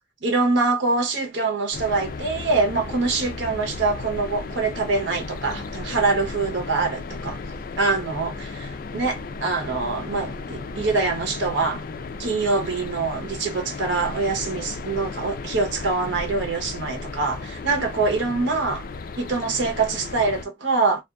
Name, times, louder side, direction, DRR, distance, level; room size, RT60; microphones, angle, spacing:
voice 1, 0.2-7.4 7.8-11.8 12.2-18.9 19.2-21.0, right 3 dB, 80° right, 1.0 m, -24 dB
sound 1, 1.7-20.5, left 3 dB, 50° left, 0.3 m, -35 dB
2.6 x 2.4 x 2.4 m
head